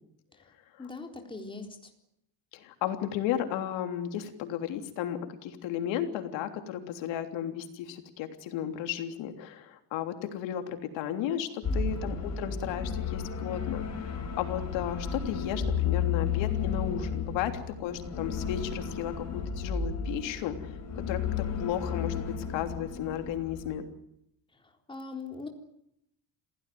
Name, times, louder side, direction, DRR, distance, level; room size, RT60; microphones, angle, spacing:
voice 1, 0.8-1.7 11.7-12.1 24.9-25.5, left 4 dB, 10° left, 3 dB, 3.9 m, -41 dB
voice 2, 2.5-20.8 21.1-23.9, left 10 dB, 85° left, 6 dB, 3.4 m, -34 dB
sound 1, 11.6-23.8, left 6 dB, 40° left, 6.8 m, -33 dB
27.0 x 17.0 x 9.4 m, 0.77 s
cardioid pair, 150°, 43 cm